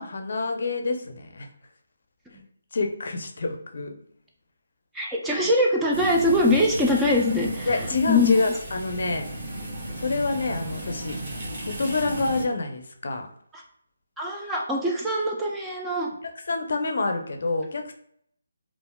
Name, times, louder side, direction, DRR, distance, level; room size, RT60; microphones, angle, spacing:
voice 1, 0.0-1.5 2.7-3.9 7.7-9.3 10.0-11.2 11.6-13.3 16.5-17.9, left 3 dB, 60° left, 5 dB, 0.5 m, -27 dB
voice 2, 4.9-7.7 8.1-8.4 13.5-13.6 14.2-16.1, left 1 dB, 5° right, -3 dB, 0.3 m, -23 dB
sound 1, 5.9-12.5, right 1 dB, 40° right, 1.2 m, -35 dB
3.4 x 2.4 x 2.2 m, 0.66 s
hypercardioid pair, 165°, 0 cm